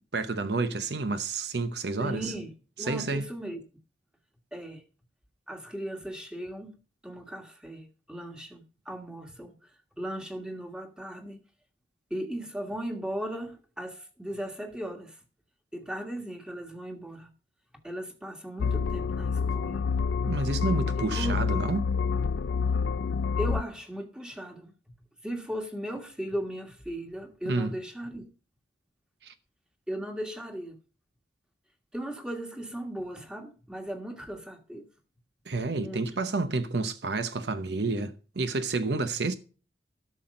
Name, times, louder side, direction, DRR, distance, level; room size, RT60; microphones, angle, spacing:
voice 1, 0.1-2.3 2.9-3.3 20.2-21.8 27.4-27.7 29.2-29.3 35.5-39.3, right 3 dB, 65° right, 0.8 m, -30 dB
voice 2, 2.0-3.6 4.5-4.8 5.5-6.7 7.0-9.7 10.0-11.4 12.1-15.2 15.7-17.3 17.8-19.8 21.0-21.4 23.4-24.7 25.2-28.3 29.9-30.7 31.9-34.8 35.7-36.2, right 1 dB, 5° right, 1.5 m, -37 dB
sound 1, 18.6-23.6, left 5 dB, 75° left, 0.4 m, -28 dB
12.5 x 6.1 x 5.3 m
head